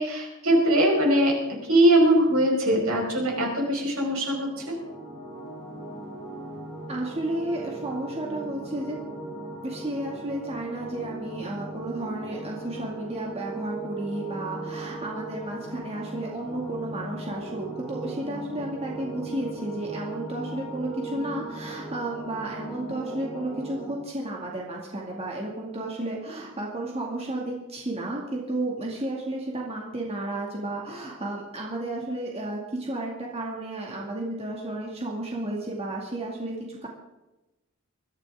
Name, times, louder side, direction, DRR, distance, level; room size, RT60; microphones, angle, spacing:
voice 1, 0.0-4.7, right 1 dB, 80° right, -1 dB, 5.4 m, -21 dB
sound 1, 4.5-23.9, right 2 dB, ahead, 7.3 m, -38 dB
voice 2, 6.9-9.0 9.6-36.9, right 1 dB, 30° right, -2 dB, 2.3 m, -32 dB
21.5 x 13.5 x 3.7 m, 1.0 s
head